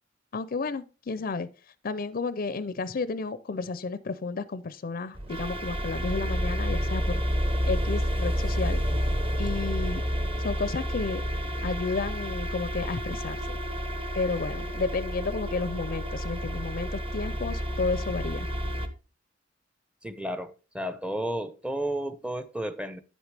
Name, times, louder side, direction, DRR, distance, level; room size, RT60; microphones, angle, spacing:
voice 1, 0.3-1.5 1.8-7.2 7.7-8.8 9.4-10.0 10.4-11.2 11.6-13.4 14.2-18.5, left 4 dB, 45° left, 0.5 m, -32 dB
sound 1, 5.2-18.9, equal, 30° right, 1.0 m, -30 dB
voice 2, 20.0-23.0, right 1 dB, 5° right, 0.6 m, -32 dB
10.0 x 8.0 x 3.3 m
head